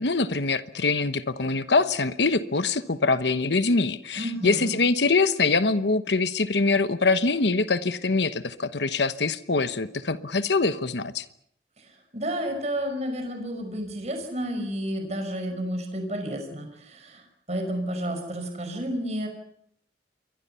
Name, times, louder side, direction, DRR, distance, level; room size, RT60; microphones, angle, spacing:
voice 1, 0.0-11.2, left 3 dB, 75° left, 11 dB, 1.1 m, -24 dB
voice 2, 4.2-4.8 11.8-19.3, equal, 40° right, 5 dB, 5.4 m, -31 dB
28.0 x 23.5 x 5.7 m, 0.69 s
head